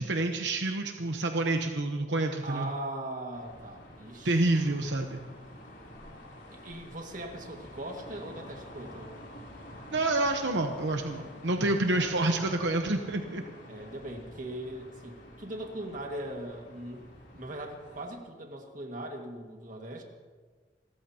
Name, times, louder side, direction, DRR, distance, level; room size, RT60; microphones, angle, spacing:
voice 1, 0.0-2.7 4.2-5.2 9.9-13.4, right 2 dB, 75° right, 4 dB, 1.0 m, -28 dB
voice 2, 2.4-4.9 6.5-9.2 11.9-12.3 13.7-20.0, right 1 dB, 45° right, 2 dB, 1.9 m, -40 dB
sound 1, 3.3-18.1, left 1 dB, 90° left, 3.3 m, -49 dB
29.0 x 14.0 x 2.9 m, 1.5 s
head